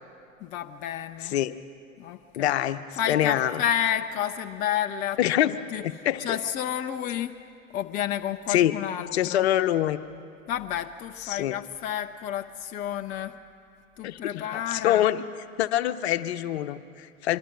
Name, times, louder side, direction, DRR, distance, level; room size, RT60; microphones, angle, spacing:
voice 1, 0.4-1.4 2.0-2.5 2.9-5.2 5.4-5.8 6.2-7.4 7.7-9.5 10.5-13.4 14.0-15.1, left 10 dB, 20° left, 6 dB, 0.6 m, -30 dB
voice 2, 2.4-2.8 3.1-3.6 5.2-5.5 5.8-6.4 8.5-8.7 9.1-10.0 11.3-11.6 14.0-15.2 15.6-17.4, left 12 dB, 55° left, 11 dB, 1.0 m, -25 dB
24.5 x 24.0 x 6.2 m, 2.3 s
figure-of-eight pair, 105°, 40 cm